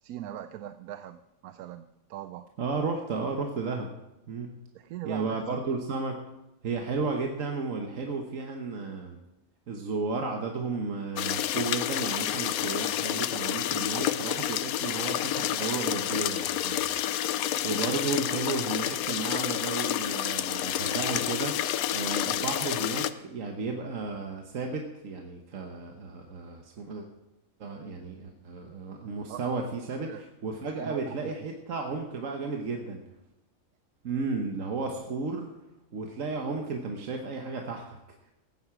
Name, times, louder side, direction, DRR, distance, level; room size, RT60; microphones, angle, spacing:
voice 1, 0.0-2.5 4.7-5.4 29.3-29.5 29.8-30.2 30.6-31.4, right 11 dB, 90° right, 10 dB, 1.1 m, -41 dB
voice 2, 2.6-3.9 4.3-4.5 5.0-6.2 6.6-9.2 9.7-17.2 17.6-21.6 21.9-27.1 27.6-33.0 34.0-35.5 35.9-38.0, right 4 dB, 65° right, 3 dB, 1.4 m, -33 dB
sound 1, 11.2-23.1, left 12 dB, 85° left, 1.1 m, -29 dB
16.0 x 9.7 x 4.8 m, 0.99 s
omnidirectional pair, 1.5 m